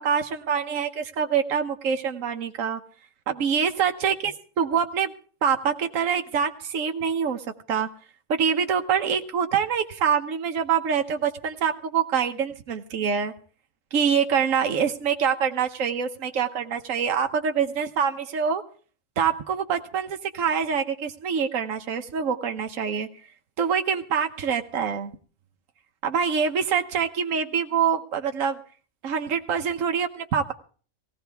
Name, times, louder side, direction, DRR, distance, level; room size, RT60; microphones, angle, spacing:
voice 1, 0.0-2.8 3.3-5.1 5.4-7.9 8.3-13.3 13.9-18.6 19.2-23.1 23.6-25.1 26.0-28.6 29.0-30.5, right 7 dB, 85° right, 6 dB, 1.3 m, -25 dB
19.0 x 16.0 x 3.4 m, 0.42 s
omnidirectional pair, 1.3 m